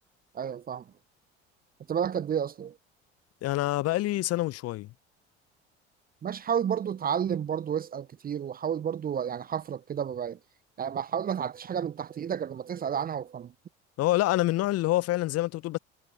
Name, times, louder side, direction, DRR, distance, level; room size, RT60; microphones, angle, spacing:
voice 1, 0.3-0.9 1.9-2.8 6.2-10.4 10.8-13.5, right 8 dB, 25° right, 0.6 m, -31 dB
voice 2, 3.4-4.9 14.0-15.8, left 16 dB, 45° left, 0.8 m, -26 dB
figure-of-eight pair, 60°, 34 cm